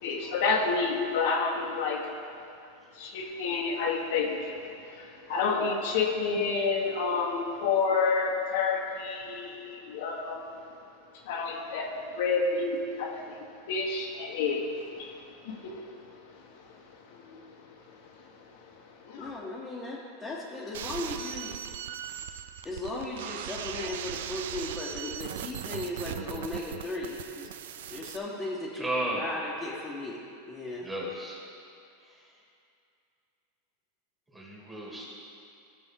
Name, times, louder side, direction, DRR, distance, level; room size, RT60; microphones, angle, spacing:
voice 1, 0.0-2.1 3.0-10.4 11.2-16.1 17.1-17.4 19.0-19.4, left 4 dB, 65° left, 0 dB, 1.3 m, -29 dB
voice 2, 19.2-21.5 22.6-27.5 27.9-28.9 29.1-30.2 30.5-30.9, left 2 dB, 15° left, -7 dB, 1.5 m, -36 dB
sound 1, 20.7-28.2, right 9 dB, 75° right, 0.4 m, -39 dB
voice 3, 28.8-29.2 30.8-31.4 34.3-35.1, right 1 dB, 10° right, -4 dB, 2.6 m, -33 dB
14.5 x 6.2 x 3.8 m, 2.5 s
supercardioid pair, 130°, 0 cm